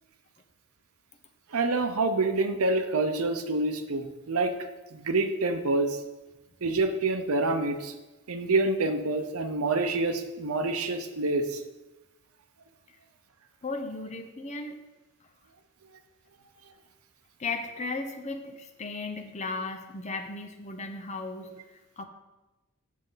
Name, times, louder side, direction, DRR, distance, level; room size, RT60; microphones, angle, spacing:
voice 1, 1.5-4.5 4.9-6.0 6.6-7.9 8.3-11.6, right 2 dB, 80° right, 8 dB, 0.7 m, -27 dB
voice 2, 13.6-14.8 17.4-21.5 22.0-22.1, left 3 dB, 30° left, 5 dB, 0.8 m, -35 dB
7.6 x 6.5 x 3.9 m, 1.1 s
head